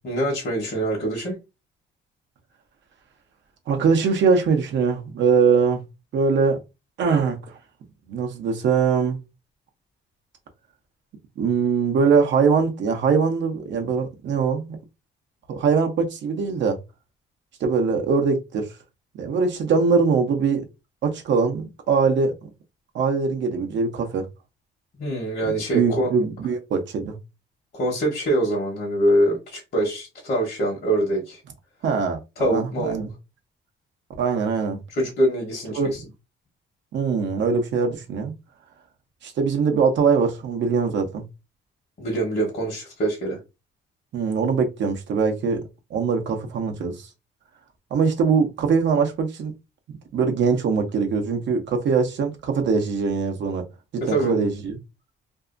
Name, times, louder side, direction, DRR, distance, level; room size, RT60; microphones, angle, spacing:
voice 1, 0.0-1.4 25.0-26.1 27.7-31.4 32.4-33.0 34.9-36.0 42.0-43.4 54.0-54.4, right 1 dB, 50° left, 1.1 m, -24 dB
voice 2, 3.7-5.8 6.1-6.6 7.0-7.6 8.1-9.2 11.4-14.7 15.5-16.8 17.6-18.7 19.1-20.6 21.0-22.3 22.9-24.3 25.4-27.2 31.8-33.1 34.2-34.8 35.7-35.9 36.9-38.3 39.2-41.2 44.1-45.6 45.9-47.1 47.9-49.5 49.9-53.6 53.9-54.8, right 5 dB, 65° right, 0.7 m, -22 dB
2.7 x 2.4 x 2.4 m
cardioid pair, 90°, 20 cm